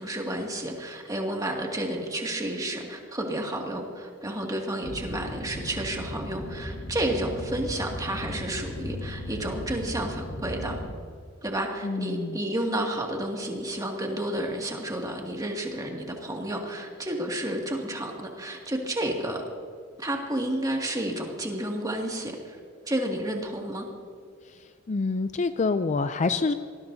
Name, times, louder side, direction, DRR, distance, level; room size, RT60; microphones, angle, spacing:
voice 1, 0.0-10.8 11.4-19.4 20.0-22.6 22.9-23.9, right 1 dB, 20° right, 0 dB, 2.2 m, -31 dB
sound 1, 4.8-11.0, left 1 dB, 85° left, 2.2 m, -37 dB
voice 2, 11.8-12.4 24.9-26.5, left 3 dB, 35° left, 11 dB, 0.4 m, -26 dB
26.0 x 20.0 x 2.8 m, 2.1 s
head